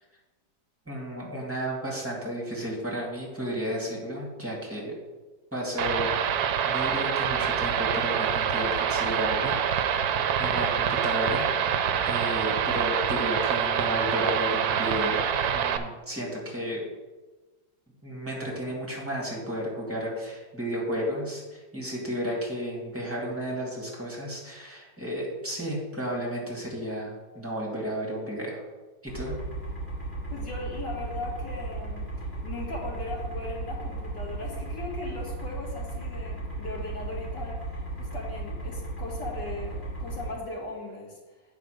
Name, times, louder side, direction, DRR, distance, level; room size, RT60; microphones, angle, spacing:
voice 1, 0.9-4.9 5.5-11.5 12.0-16.8 18.0-28.6 29.0-29.4, equal, 10° right, -3 dB, 2.3 m, -33 dB
sound 1, 5.8-15.8, right 8 dB, 70° right, 1.1 m, -26 dB
sound 2, 29.1-40.3, right 2 dB, 35° left, 3.0 m, -35 dB
voice 2, 30.3-41.2, left 2 dB, 80° left, -3 dB, 2.7 m, -38 dB
8.0 x 5.0 x 6.4 m, 1.2 s
omnidirectional pair, 1.8 m